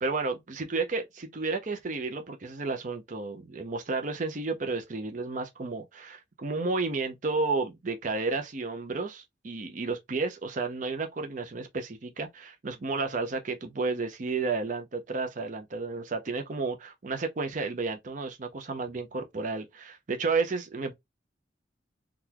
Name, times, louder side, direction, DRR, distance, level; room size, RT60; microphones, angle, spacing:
voice 1, 0.0-20.9, right 3 dB, 45° right, 0.6 m, -32 dB
3.8 x 2.3 x 2.9 m
head